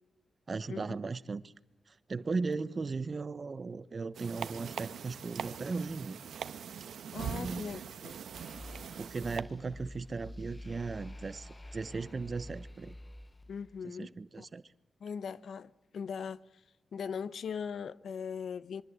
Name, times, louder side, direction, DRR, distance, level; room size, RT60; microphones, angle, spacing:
voice 1, 0.5-1.5 1.9-6.2 7.3-7.7 9.0-13.0 13.8-14.6, right 4 dB, 40° right, 1.1 m, -37 dB
sound 1, 4.1-9.4, right 7 dB, 85° right, 1.3 m, -41 dB
voice 2, 7.1-8.2 13.5-14.5 15.0-16.4 16.9-18.8, left 6 dB, 75° left, 0.9 m, -40 dB
sound 2, 8.3-13.8, left 1 dB, 20° left, 1.2 m, -48 dB
26.0 x 23.5 x 8.2 m
cardioid pair, 90°, 0 cm